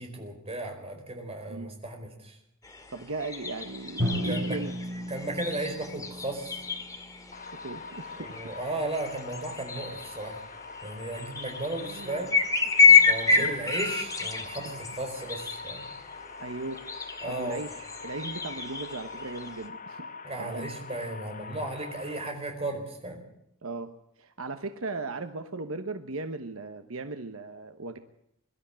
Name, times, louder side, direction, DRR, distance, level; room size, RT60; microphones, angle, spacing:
voice 1, 0.0-2.4 4.2-4.6 5.1-6.6 8.2-10.4 10.8-12.4 13.1-15.9 17.2-17.7 20.2-23.2, right 2 dB, 30° right, 3 dB, 4.6 m, -35 dB
sound 1, 2.6-19.7, left 5 dB, 15° left, 2.1 m, -29 dB
voice 2, 2.9-4.7 7.6-8.4 11.8-12.3 12.7-13.8 14.6-14.8 16.4-16.8 17.2-20.1 20.4-20.7 23.6-23.9 24.2-28.0, right 3 dB, 70° right, 8 dB, 1.1 m, -37 dB
Drum, 4.0-7.8, equal, 45° right, 5.1 m, -34 dB
sound 2, 7.3-22.3, left 4 dB, 40° left, 1.0 m, -44 dB
23.0 x 12.5 x 8.8 m, 0.80 s
head